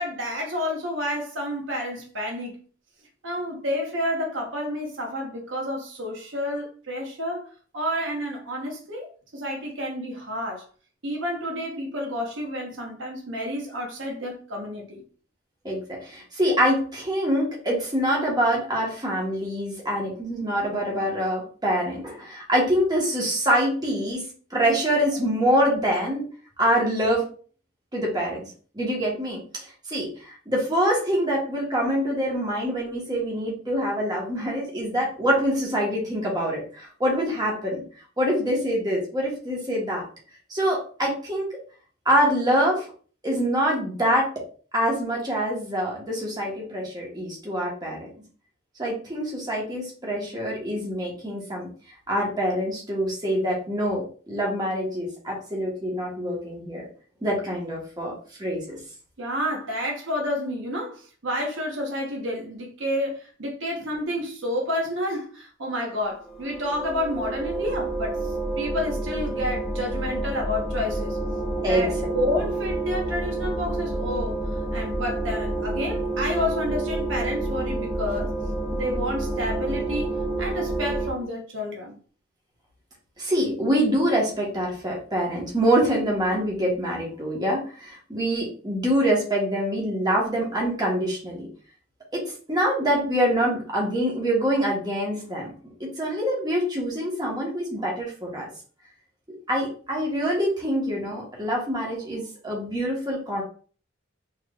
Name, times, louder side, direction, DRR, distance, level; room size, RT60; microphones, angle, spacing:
voice 1, 0.0-2.6 3.2-7.5 7.7-10.6 11.0-15.0 59.2-71.2 71.7-74.4 74.7-78.3 78.7-82.0, left 1 dB, 65° right, 1.0 m, -30 dB
voice 2, 15.6-26.2 26.6-27.3 27.9-28.4 28.7-37.8 38.2-40.0 40.5-41.5 42.0-42.8 43.2-44.3 44.7-48.1 48.8-51.7 52.1-56.9 57.2-58.1 58.4-58.8 71.6-72.4 83.2-91.5 92.1-95.5 95.8-98.5 99.5-103.4, equal, 20° right, 1.3 m, -25 dB
sound 1, 66.2-81.1, right 2 dB, 5° left, 0.8 m, -29 dB
4.5 x 3.2 x 2.4 m
head